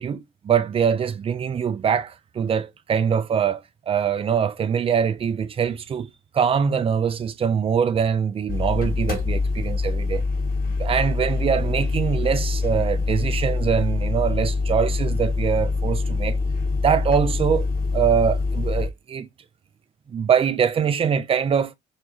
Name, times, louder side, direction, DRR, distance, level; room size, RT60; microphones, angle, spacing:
voice 1, 0.0-6.1 6.3-10.3 10.6-16.4 16.8-17.7 17.9-19.3 20.1-21.7, right 7 dB, 20° right, 0.3 m, -23 dB
sound 1, 8.5-18.9, left 3 dB, 30° left, 1.0 m, -24 dB
2.2 x 2.1 x 2.7 m
figure-of-eight pair, 45°, 30 cm